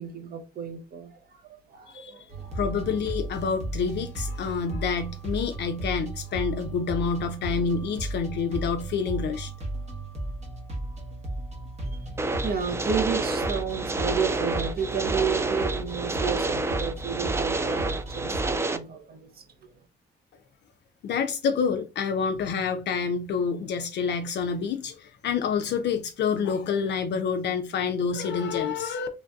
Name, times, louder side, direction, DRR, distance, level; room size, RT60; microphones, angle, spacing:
voice 1, 0.0-2.6 11.8-19.7, right 6 dB, 50° right, 0.7 m, -32 dB
voice 2, 1.9-2.2 2.5-9.5 21.0-29.1, left 6 dB, 60° left, 0.4 m, -28 dB
sound 1, 2.3-18.6, right 2 dB, 35° right, 1.0 m, -35 dB
sound 2, 12.2-18.8, right 3 dB, 15° right, 0.3 m, -29 dB
3.1 x 2.5 x 2.2 m
cardioid pair, 90°, 20 cm